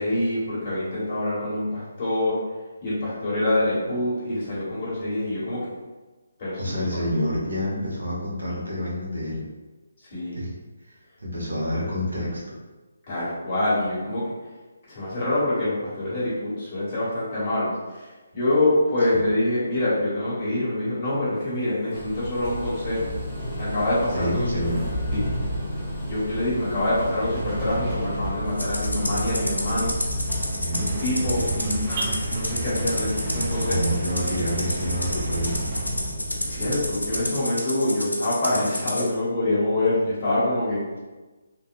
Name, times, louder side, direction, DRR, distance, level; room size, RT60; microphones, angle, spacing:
voice 1, 0.0-2.3 2.8-5.6 6.4-7.0 10.1-10.5 13.1-14.3 14.9-23.1 23.6-24.3 25.1-25.2 26.0-30.0 30.7-33.8 36.4-40.8, left 1 dB, 35° left, -9 dB, 1.5 m, -25 dB
voice 2, 6.6-9.4 10.4-10.5 11.2-12.4 19.1-19.2 24.1-24.8 30.5-31.6 33.6-35.6, equal, 70° right, -6 dB, 1.3 m, -28 dB
sound 1, 21.9-37.2, equal, 5° left, 0.9 m, -31 dB
Rattle (instrument), 28.6-39.1, left 1 dB, 90° left, 0.6 m, -30 dB
sound 2, 30.7-35.8, right 3 dB, 35° right, 0.4 m, -33 dB
3.1 x 2.5 x 2.5 m, 1.2 s
figure-of-eight pair, 145°, 0 cm